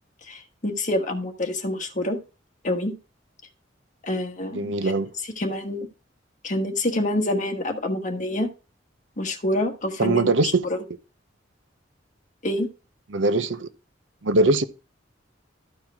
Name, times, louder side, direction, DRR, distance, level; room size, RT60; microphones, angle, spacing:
voice 1, 0.2-2.2 2.6-3.0 4.0-4.9 5.4-5.9 6.4-8.5 9.2-10.8 12.4-12.7, left 1 dB, 40° left, 1.4 m, -27 dB
voice 2, 4.5-5.1 10.0-10.6 13.1-13.7 14.2-14.7, right 2 dB, 75° right, 0.7 m, -21 dB
13.5 x 4.7 x 3.6 m
head